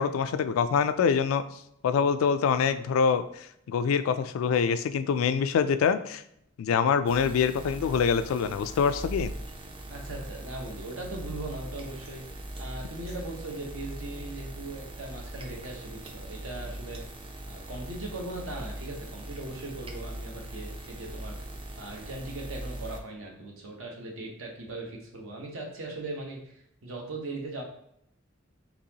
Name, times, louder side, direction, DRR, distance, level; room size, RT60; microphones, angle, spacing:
voice 1, 0.0-1.5 1.8-6.2 6.6-9.3, left 6 dB, 85° left, 12 dB, 0.3 m, -25 dB
sound 1, 7.1-23.0, right 1 dB, 25° right, 0.4 m, -40 dB
voice 2, 9.9-17.0 17.5-21.3 21.8-26.5 26.8-27.6, right 2 dB, 75° right, 0 dB, 0.9 m, -39 dB
4.0 x 2.9 x 2.8 m, 0.74 s
head